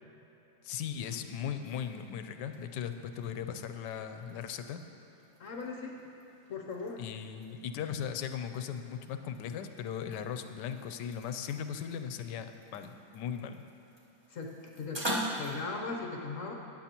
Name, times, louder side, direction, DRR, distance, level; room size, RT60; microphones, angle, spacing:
voice 1, 0.6-4.8 7.0-13.6, left 8 dB, 85° left, 8 dB, 1.2 m, -38 dB
sound 1, 0.7-15.5, equal, 15° right, 1.2 m, -45 dB
voice 2, 5.4-6.0 6.5-7.0 14.3-15.1 15.4-16.5, left 4 dB, 55° left, 1 dB, 1.0 m, -38 dB
16.0 x 9.7 x 2.9 m, 3.0 s
omnidirectional pair, 1.9 m